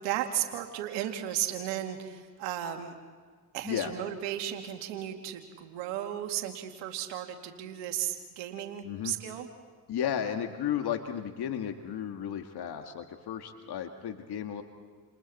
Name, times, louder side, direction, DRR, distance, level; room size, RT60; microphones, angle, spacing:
voice 1, 0.0-2.9 3.5-9.5, right 11 dB, 80° right, 5 dB, 2.3 m, -35 dB
voice 2, 8.8-9.1 9.9-14.6, left 9 dB, 65° left, 6 dB, 1.9 m, -34 dB
29.5 x 28.5 x 4.3 m, 1.5 s
hypercardioid pair, 50°, 42 cm